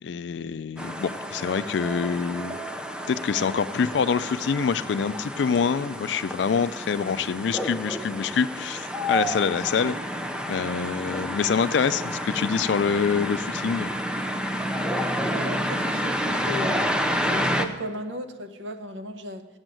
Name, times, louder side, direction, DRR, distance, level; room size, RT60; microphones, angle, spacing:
voice 1, 0.0-2.6 3.1-10.0 10.5-13.9, left 6 dB, 75° left, 15 dB, 0.4 m, -25 dB
sound 1, 0.8-17.7, equal, 5° right, 0.5 m, -30 dB
voice 2, 15.2-17.0 17.3-19.5, equal, 90° right, 8 dB, 0.8 m, -35 dB
8.0 x 7.7 x 7.6 m, 1.2 s
head